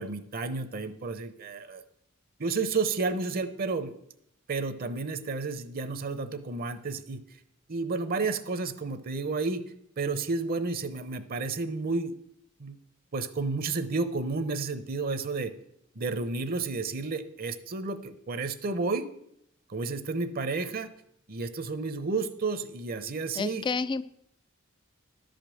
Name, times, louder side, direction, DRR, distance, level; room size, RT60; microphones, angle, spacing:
voice 1, 0.0-1.8 2.4-4.0 4.5-7.2 7.7-9.6 10.0-12.1 12.6-12.8 13.1-15.5 16.0-19.1 19.7-20.9 21.3-23.6, right 3 dB, 45° right, 11 dB, 0.7 m, -31 dB
voice 2, 23.4-24.0, left 4 dB, 20° left, 16 dB, 0.3 m, -29 dB
11.5 x 5.2 x 7.6 m, 0.75 s
head